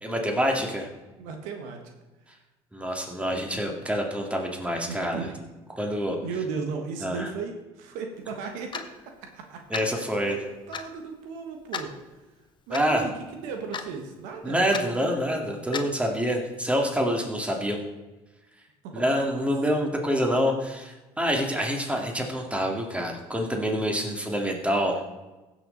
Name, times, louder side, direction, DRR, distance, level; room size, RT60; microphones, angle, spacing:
voice 1, 0.0-0.9 2.7-5.3 5.8-6.2 7.0-7.3 9.7-10.3 12.7-13.1 14.4-17.8 18.9-25.0, equal, 10° right, 1 dB, 2.3 m, -26 dB
voice 2, 1.2-1.8 4.9-5.4 6.2-8.8 9.3-9.6 9.9-10.4 10.7-11.9 12.7-14.6 18.8-19.4, right 5 dB, 80° right, 4 dB, 1.4 m, -36 dB
Clock, 8.7-8.9 9.7-9.9 10.7-10.9 11.7-11.9 12.7-12.9 13.7-14.0 14.7-14.9 15.7-15.9, left 6 dB, 35° left, 1.0 m, -33 dB
15.5 x 6.5 x 4.0 m, 1.1 s
supercardioid pair, 70°, 13 cm